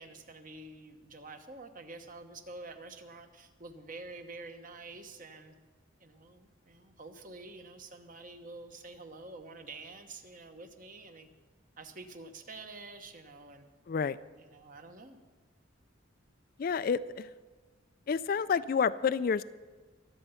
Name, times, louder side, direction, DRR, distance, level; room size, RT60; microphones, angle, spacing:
voice 1, 0.0-5.5 6.0-11.3 11.8-13.6 14.4-15.2, right 3 dB, 40° right, 7 dB, 1.1 m, -48 dB
voice 2, 16.6-17.3 18.1-19.4, left 6 dB, 45° left, 15 dB, 0.3 m, -29 dB
23.0 x 7.9 x 5.7 m, 1.4 s
head